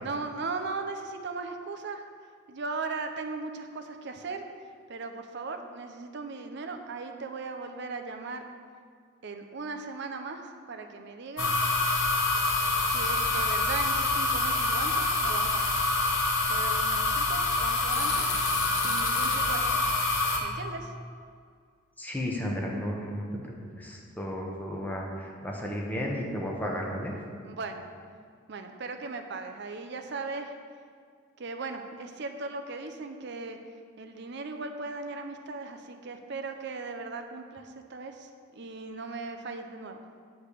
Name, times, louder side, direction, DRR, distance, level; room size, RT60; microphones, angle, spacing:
voice 1, 0.0-2.0 2.5-4.4 4.9-8.4 9.2-11.6 12.8-15.7 16.5-18.3 18.8-20.1 20.4-20.9 24.7-24.9 27.4-27.8 28.5-30.5 31.4-33.6 34.0-40.0, right 3 dB, 60° right, 6 dB, 0.6 m, -38 dB
sound 1, 11.4-20.4, left 2 dB, 70° left, 1.2 m, -26 dB
voice 2, 22.0-27.1, equal, 10° left, -2 dB, 1.0 m, -33 dB
9.6 x 3.4 x 6.6 m, 2.1 s
head